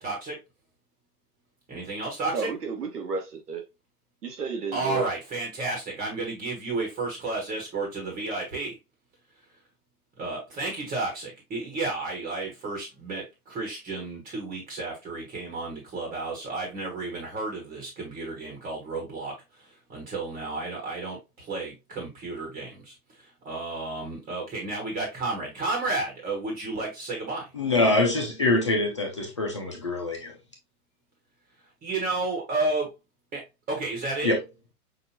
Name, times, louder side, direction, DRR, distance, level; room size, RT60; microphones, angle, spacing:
voice 1, 0.0-0.4 1.7-2.5 4.7-8.8 10.2-27.5 31.8-32.9 33.3-34.3, right 3 dB, 15° right, 1.4 m, -32 dB
voice 2, 2.3-3.6 4.2-5.0, right 4 dB, 80° right, 1.8 m, -32 dB
voice 3, 27.5-30.3 34.2-34.4, left 2 dB, 20° left, 0.4 m, -24 dB
5.9 x 2.5 x 2.8 m
hypercardioid pair, 140°, 46 cm